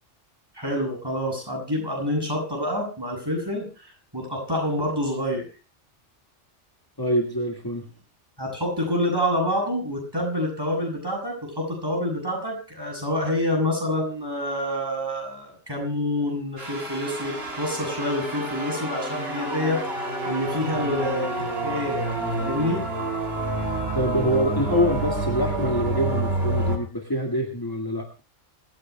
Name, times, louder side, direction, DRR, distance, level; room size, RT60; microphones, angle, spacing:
voice 1, 0.5-5.5 8.4-21.3 21.6-22.8, left 1 dB, 20° right, 1 dB, 7.9 m, -27 dB
voice 2, 7.0-7.8 24.0-28.0, equal, 20° left, 2 dB, 1.9 m, -25 dB
sound 1, 16.6-26.8, right 2 dB, 55° right, 3.2 m, -28 dB
26.5 x 15.5 x 2.3 m, 0.34 s
omnidirectional pair, 1.2 m